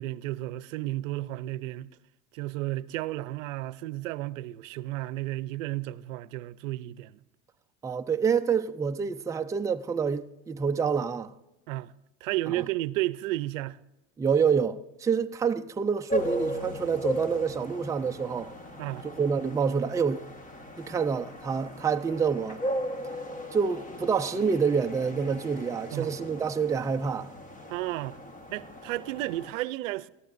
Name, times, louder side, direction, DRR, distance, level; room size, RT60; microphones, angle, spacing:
voice 1, 0.0-1.9 2.3-7.2 11.7-11.9 12.2-13.8 18.8-19.1 25.9-26.2 27.7-28.2 28.5-30.1, right 17 dB, 85° right, 0.6 m, -33 dB
voice 2, 7.8-11.3 12.5-12.6 14.2-18.5 19.0-20.2 20.8-22.6 23.5-27.3, right 6 dB, 10° right, 0.4 m, -27 dB
sound 1, 16.1-29.5, equal, 20° left, 1.4 m, -37 dB
19.0 x 13.5 x 2.6 m
supercardioid pair, 110°, 38 cm